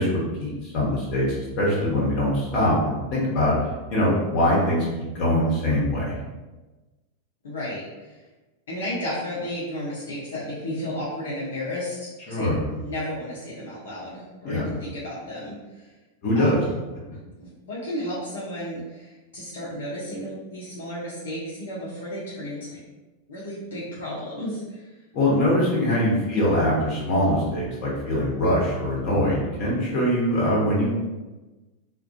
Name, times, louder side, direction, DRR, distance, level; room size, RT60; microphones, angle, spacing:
voice 1, 0.0-3.5 3.9-6.2 12.3-12.6 14.4-14.6 16.2-16.6 25.1-30.9, left 1 dB, 40° left, -5 dB, 0.9 m, -23 dB
voice 2, 7.4-8.2 8.7-15.9 16.3-16.7 17.1-22.8 23.3-24.9, left 1 dB, 60° left, -8 dB, 0.6 m, -33 dB
2.3 x 2.2 x 2.6 m, 1.2 s
figure-of-eight pair, 90°, 0 cm